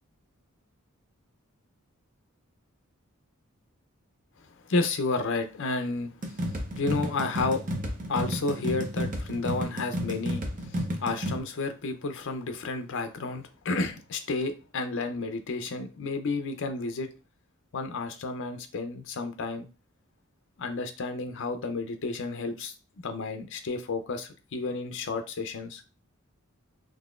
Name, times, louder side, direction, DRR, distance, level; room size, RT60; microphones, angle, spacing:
voice 1, 4.7-7.6 8.1-17.1 17.7-19.7 20.6-22.7 23.0-25.8, left 3 dB, 60° left, 0.5 m, -31 dB
sound 1, 6.2-11.4, equal, 40° right, 0.7 m, -32 dB
3.8 x 3.0 x 2.4 m
head